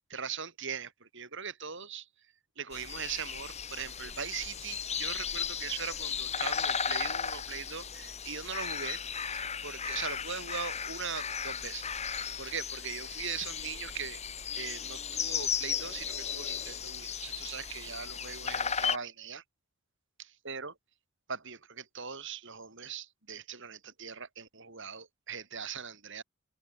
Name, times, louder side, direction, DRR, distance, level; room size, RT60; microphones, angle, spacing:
voice 1, 0.1-2.1 2.6-9.0 9.3-11.9 12.4-14.2 14.6-19.4 20.2-20.7 21.3-26.2, right 6 dB, 60° right, 5.2 m, -40 dB
sound 1, 2.7-19.0, left 7 dB, 30° left, 1.5 m, -35 dB
open air
head